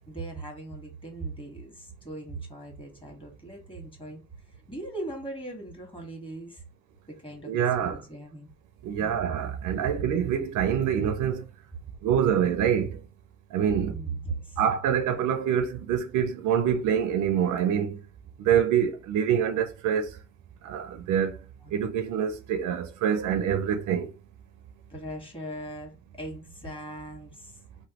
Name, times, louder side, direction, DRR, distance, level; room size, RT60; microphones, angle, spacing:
voice 1, 0.1-4.2 4.7-6.6 7.2-8.5 9.0-9.2 13.9-14.6 21.6-21.7 24.9-27.5, right 2 dB, 15° left, 1.4 m, -39 dB
voice 2, 7.5-8.0 8.9-11.4 12.0-12.9 13.5-13.9 14.6-18.0 18.4-20.1 20.7-21.3 21.7-24.1, right 8 dB, 80° right, 0.5 m, -25 dB
3.0 x 2.2 x 2.9 m
cardioid pair, 90°, 30 cm